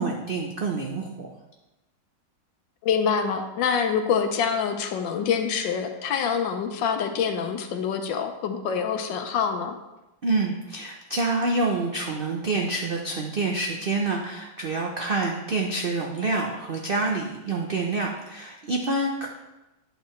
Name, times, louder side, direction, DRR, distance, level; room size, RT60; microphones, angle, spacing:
voice 1, 0.0-1.3 10.2-19.3, right 3 dB, 75° right, 1 dB, 0.5 m, -27 dB
voice 2, 2.8-9.8, left 6 dB, 90° left, 6 dB, 1.5 m, -26 dB
9.4 x 6.6 x 3.1 m, 1.0 s
omnidirectional pair, 1.9 m